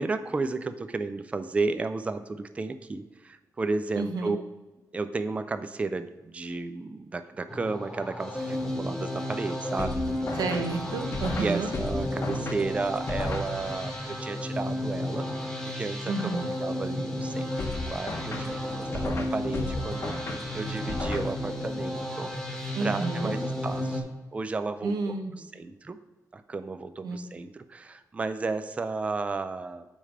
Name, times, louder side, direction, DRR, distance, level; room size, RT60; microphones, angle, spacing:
voice 1, 0.0-4.4 4.9-10.1 11.4-15.3 15.7-24.0 24.3-26.0 26.3-29.9, right 3 dB, 20° right, 10 dB, 0.4 m, -33 dB
voice 2, 4.0-4.3 10.4-11.7 16.1-16.5 22.7-23.4 24.8-25.3 27.0-27.3, right 3 dB, 85° right, 5 dB, 1.0 m, -30 dB
sound 1, 7.5-24.0, left 1 dB, 5° left, 1.2 m, -33 dB
sound 2, 9.8-14.0 17.6-21.8, left 3 dB, 40° left, 0.8 m, -35 dB
8.6 x 3.3 x 6.4 m, 1.2 s
wide cardioid pair, 165°, 7 cm